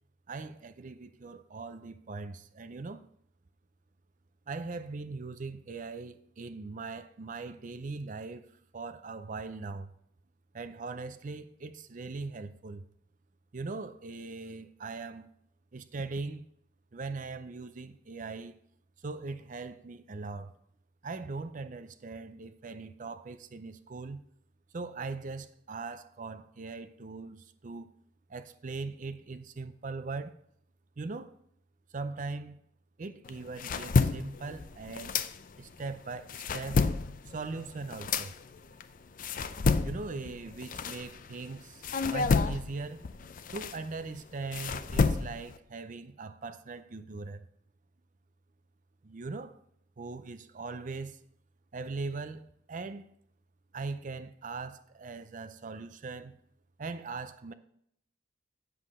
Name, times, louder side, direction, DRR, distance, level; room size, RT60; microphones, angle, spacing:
voice 1, 0.3-3.0 4.5-8.5 8.7-9.9 10.5-12.9 13.5-15.3 15.7-16.5 16.9-18.5 19.0-20.5 21.0-24.2 24.7-27.9 28.3-30.3 31.0-31.4 31.9-32.6 33.0-35.1 35.6-36.9 37.3-38.4 39.8-43.0 43.5-47.5 49.0-49.6 50.0-51.2 51.7-53.1 53.7-56.4 56.8-57.5, right 3 dB, 45° right, 0.5 m, -40 dB
sound 1, 33.3-35.8 36.2-41.5 41.8-45.6, left 4 dB, 45° left, 0.4 m, -30 dB
8.1 x 7.5 x 3.6 m
head